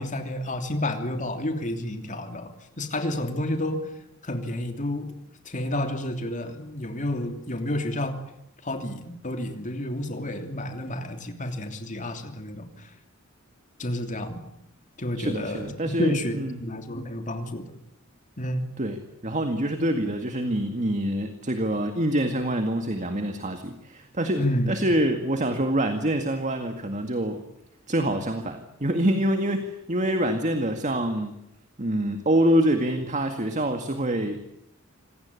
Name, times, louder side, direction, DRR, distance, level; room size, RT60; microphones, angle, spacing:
voice 1, 0.0-3.8 4.2-5.1 5.4-8.2 8.6-12.7 13.8-14.4 15.0-15.7 16.0-17.6 18.4-18.7 24.4-24.7, left 1 dB, 40° left, 6 dB, 3.0 m, -30 dB
voice 2, 15.2-16.6 18.8-27.4 27.9-31.4 31.8-34.4, right 1 dB, 35° right, 7 dB, 2.0 m, -26 dB
26.5 x 17.5 x 9.8 m, 0.82 s
head